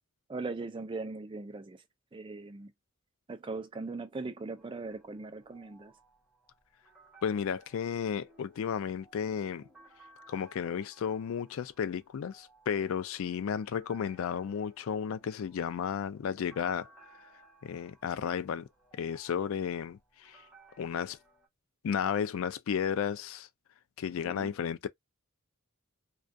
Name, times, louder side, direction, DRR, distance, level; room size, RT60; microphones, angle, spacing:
voice 1, 0.3-1.8 2.1-2.7 3.3-5.9 24.2-24.5, right 3 dB, 25° right, 0.3 m, -39 dB
sound 1, 4.6-21.5, right 2 dB, 5° right, 1.0 m, -61 dB
voice 2, 7.2-9.6 10.3-16.9 17.6-18.7 19.0-20.4 20.8-21.2 21.8-23.5 24.0-24.9, left 7 dB, 70° left, 0.3 m, -33 dB
2.3 x 2.3 x 2.5 m
head